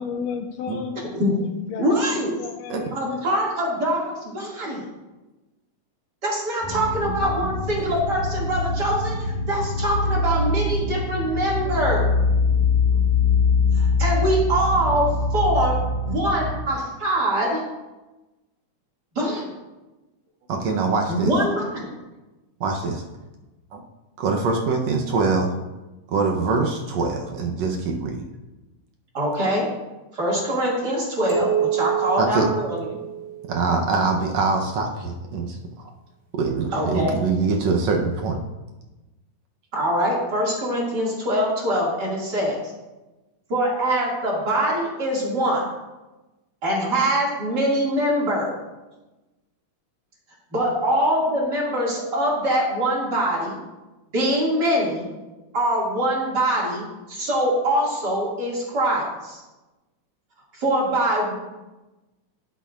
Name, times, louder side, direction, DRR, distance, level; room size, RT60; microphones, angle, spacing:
voice 1, 0.0-1.2 1.7-2.1 2.4-3.3, left 6 dB, 75° left, 5 dB, 1.6 m, -32 dB
voice 2, 1.8-2.3 2.9-4.9 6.2-12.1 13.7-17.6 19.2-19.5 21.1-22.0 29.1-29.7 30.1-32.8 36.7-37.2 39.7-42.7 43.5-45.6 46.6-48.5 50.5-53.6 54.1-55.1 55.5-59.4 60.5-61.3, right 1 dB, 35° right, -4 dB, 2.6 m, -23 dB
sound 1, 6.6-16.6, left 3 dB, 15° left, 1.7 m, -23 dB
voice 3, 20.5-21.3 22.6-23.0 23.7-23.8 24.2-25.5 26.1-28.3 32.2-32.5 33.5-35.9 36.3-38.4, right 4 dB, 70° right, 1 dB, 2.0 m, -24 dB
sound 2, 31.3-33.7, right 9 dB, 55° right, 3.1 m, -26 dB
11.0 x 11.0 x 2.5 m, 1.1 s
omnidirectional pair, 3.3 m